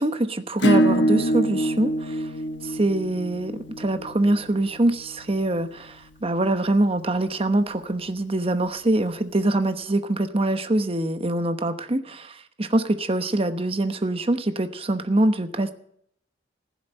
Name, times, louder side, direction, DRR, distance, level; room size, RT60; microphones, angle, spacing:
voice 1, 0.0-2.3 2.6-15.7, right 1 dB, 30° right, 9 dB, 1.0 m, -24 dB
Acoustic guitar / Strum, 0.6-5.9, equal, 80° left, 1.3 m, -26 dB
15.5 x 7.2 x 9.3 m, 0.70 s
head